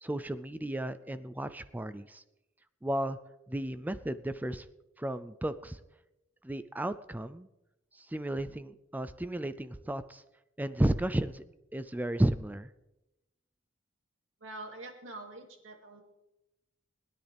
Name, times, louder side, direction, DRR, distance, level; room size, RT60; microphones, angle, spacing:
voice 1, 0.0-2.2 2.8-3.2 3.5-4.7 5.0-5.8 6.4-7.5 7.9-10.2 10.6-11.4 11.7-12.7, right 1 dB, 10° right, 13 dB, 0.4 m, -33 dB
voice 2, 14.4-16.0, right 2 dB, 75° right, 3 dB, 2.4 m, -45 dB
20.5 x 10.5 x 3.4 m, 0.94 s
head